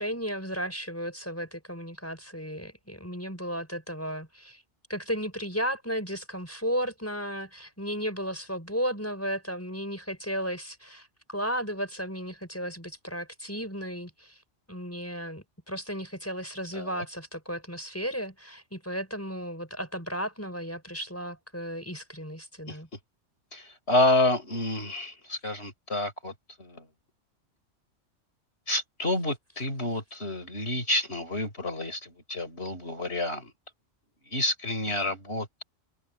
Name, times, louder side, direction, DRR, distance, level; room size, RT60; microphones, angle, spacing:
voice 1, 0.0-4.6 4.9-14.4 14.7-22.9 35.0-35.1, equal, 10° left, 5.3 m, -34 dB
voice 2, 23.5-26.3 26.6-26.8 28.7-33.5 34.3-35.6, left 1 dB, 55° left, 5.5 m, -29 dB
open air
omnidirectional pair, 1.3 m